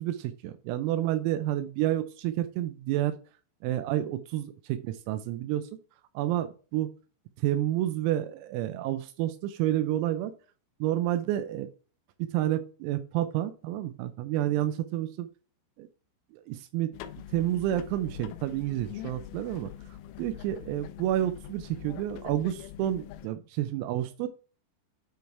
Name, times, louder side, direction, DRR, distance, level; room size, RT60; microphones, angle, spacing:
voice 1, 0.0-3.2 3.6-5.7 6.2-6.9 7.4-10.3 10.8-11.7 12.2-15.3 15.8-15.9 16.3-16.9 17.3-19.7 20.2-24.3, right 13 dB, 85° right, 9 dB, 3.4 m, -29 dB
sound 1, 16.9-23.3, left 11 dB, 80° left, 3.0 m, -44 dB
9.3 x 3.4 x 4.6 m, 0.37 s
omnidirectional pair, 5.9 m